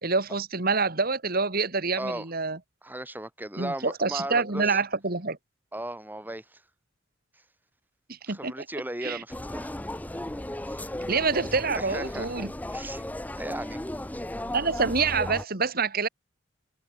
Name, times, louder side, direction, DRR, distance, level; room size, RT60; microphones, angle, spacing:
voice 1, 0.0-2.6 3.6-5.4 8.1-8.5 9.0-9.2 11.1-12.5 14.5-16.1, right 4 dB, 50° right, 2.3 m, -26 dB
voice 2, 2.8-4.8 5.7-6.6 8.3-9.7 10.6-10.9 11.8-12.3 12.7-13.1 13.4-13.8, right 1 dB, 10° right, 4.7 m, -36 dB
sound 1, 9.3-15.4, left 1 dB, 10° left, 0.6 m, -35 dB
head